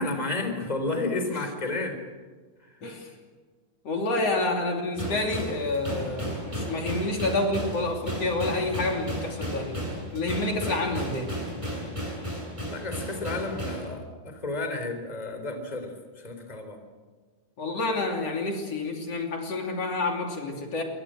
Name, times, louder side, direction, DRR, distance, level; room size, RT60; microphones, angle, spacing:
voice 1, 0.0-2.0 12.7-15.9 16.2-16.8, left 2 dB, 15° left, 6 dB, 3.7 m, -31 dB
voice 2, 2.8-3.1 3.9-9.9 10.1-11.3 17.6-20.8, left 2 dB, 55° left, 2 dB, 3.9 m, -28 dB
sound 1, 4.9-13.9, equal, 10° right, 7.3 m, -34 dB
27.0 x 24.0 x 7.8 m, 1.5 s
omnidirectional pair, 3.3 m